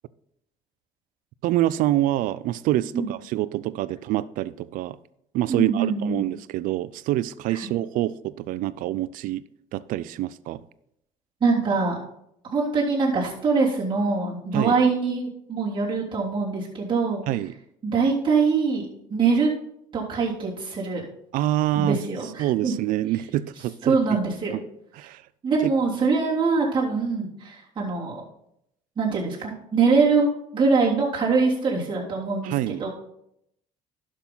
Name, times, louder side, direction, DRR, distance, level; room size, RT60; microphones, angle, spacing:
voice 1, 1.4-5.0 5.3-9.4 9.7-10.6 14.5-14.7 17.3-17.5 21.3-22.0 22.4-24.2 24.5-24.6 25.0-25.2 25.6-25.7 32.4-32.8, right 14 dB, 70° right, 0.4 m, -26 dB
voice 2, 5.5-6.2 7.5-7.6 11.4-12.0 12.4-17.2 17.8-19.5 19.9-21.0 21.7-22.7 23.8-24.6 25.4-28.2 29.0-32.9, right 4 dB, 35° right, 3.2 m, -23 dB
11.5 x 6.3 x 3.9 m
supercardioid pair, 80°, 15 cm